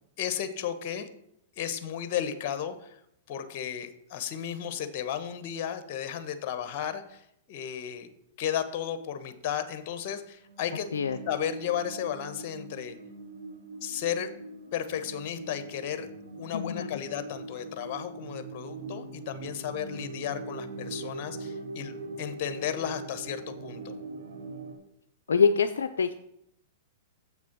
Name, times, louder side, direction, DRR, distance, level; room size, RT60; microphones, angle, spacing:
voice 1, 0.2-1.1 1.6-3.0 3.3-8.1 8.4-10.9 11.3-13.0 13.8-14.3 14.7-16.1 16.4-24.0, left 9 dB, 50° left, 11 dB, 1.1 m, -34 dB
sound 1, 10.4-24.8, right 3 dB, 75° right, 1.4 m, -42 dB
voice 2, 16.5-17.0 25.3-26.1, left 6 dB, 80° left, 9 dB, 0.5 m, -25 dB
7.7 x 6.0 x 6.0 m, 0.77 s
hypercardioid pair, 115°, 0 cm